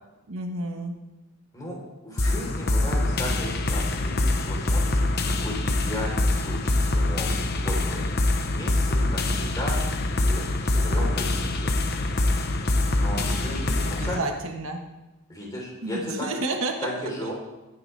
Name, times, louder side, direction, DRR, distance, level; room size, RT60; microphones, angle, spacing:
voice 1, 0.3-1.0 13.8-14.8 15.8-16.9 17.2-17.3, right 2 dB, 75° right, 3 dB, 1.6 m, -30 dB
voice 2, 2.0-8.1 8.4-9.8 10.1-12.4 12.7-14.2 15.3-16.3 16.8-17.3, equal, 15° left, -2 dB, 3.9 m, -36 dB
sound 1, 2.2-14.2, left 2 dB, 45° left, 1.0 m, -24 dB
20.5 x 9.5 x 3.5 m, 1.1 s
head